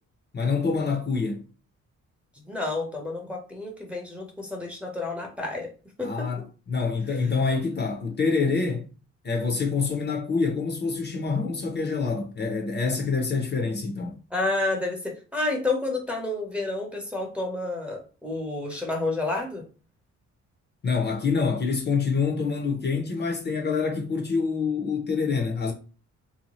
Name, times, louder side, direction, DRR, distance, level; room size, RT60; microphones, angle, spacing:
voice 1, 0.3-1.4 6.0-8.9 9.2-14.2 20.8-25.7, left 4 dB, 35° left, 0.7 m, -26 dB
voice 2, 2.4-5.7 6.0-6.3 14.3-19.6, left 2 dB, 5° right, 0.9 m, -30 dB
2.7 x 2.2 x 3.0 m
cardioid pair, 90°, 30 cm